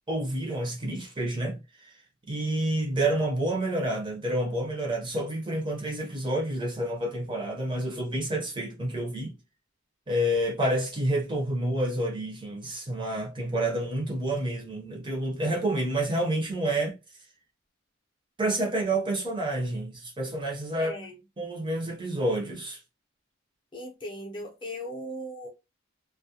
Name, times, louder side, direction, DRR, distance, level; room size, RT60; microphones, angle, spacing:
voice 1, 0.1-1.9 2.3-9.4 10.1-17.0 18.4-21.0 21.4-22.8, right 1 dB, 25° right, 0.6 m, -29 dB
voice 2, 20.8-21.2 23.7-25.5, equal, 25° left, 0.6 m, -38 dB
2.3 x 2.1 x 2.7 m
head